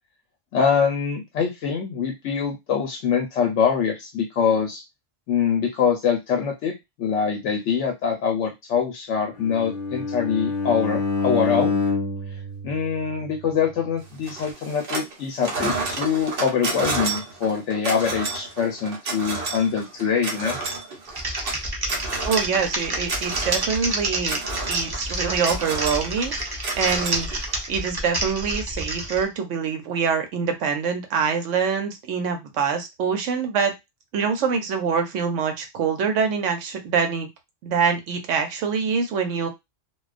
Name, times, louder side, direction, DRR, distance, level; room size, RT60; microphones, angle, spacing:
voice 1, 0.5-4.8 5.3-11.8 12.6-20.6, left 6 dB, 75° left, 3 dB, 0.9 m, -24 dB
Bowed string instrument, 9.4-13.5, left 3 dB, 35° left, 0.8 m, -27 dB
sound 1, 14.3-15.1 15.4-27.8, right 3 dB, 55° right, 0.9 m, -31 dB
Typing, 21.1-29.2, right 1 dB, 35° right, 0.3 m, -28 dB
voice 2, 22.2-27.3 27.7-33.7 34.1-37.3 37.6-39.5, right 6 dB, 75° right, 6 dB, 1.0 m, -25 dB
2.4 x 2.2 x 2.4 m, 0.20 s
omnidirectional pair, 1.3 m